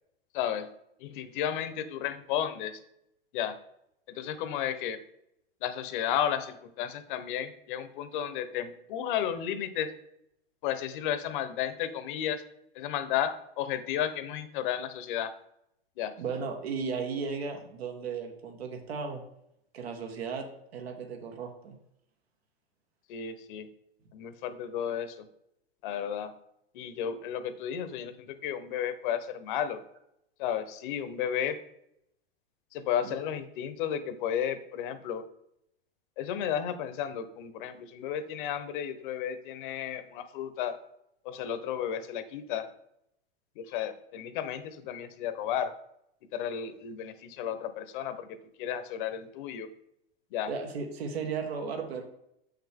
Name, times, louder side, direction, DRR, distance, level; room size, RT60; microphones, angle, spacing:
voice 1, 0.3-0.7 1.0-2.8 3.3-3.6 4.1-5.0 5.6-9.9 10.6-12.4 12.7-15.3 16.0-16.2 23.1-23.7 24.1-25.3 25.8-26.3 26.7-29.8 30.4-31.6 32.7-35.2 36.2-40.8 41.2-42.7 43.6-45.8 46.3-49.7 50.3-50.5, left 9 dB, 55° left, 12 dB, 0.9 m, -33 dB
voice 2, 16.2-19.2 19.7-20.5 20.7-21.8 33.0-33.2 50.5-52.0, right 5 dB, 75° right, 4 dB, 1.7 m, -35 dB
6.9 x 5.9 x 3.5 m, 0.79 s
hypercardioid pair, 130°, 31 cm